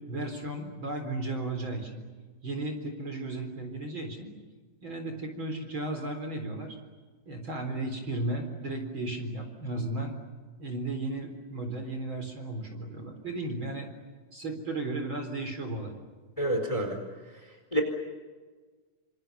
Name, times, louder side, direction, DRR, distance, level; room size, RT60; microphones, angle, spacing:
voice 1, 0.1-2.1 2.4-4.3 4.8-6.8 7.3-10.2 10.6-13.9 14.3-15.9, right 2 dB, 40° right, 5 dB, 4.6 m, -34 dB
voice 2, 16.4-17.0 17.7-17.8, right 1 dB, 10° left, 5 dB, 3.8 m, -27 dB
28.5 x 27.5 x 7.0 m, 1.4 s
omnidirectional pair, 3.6 m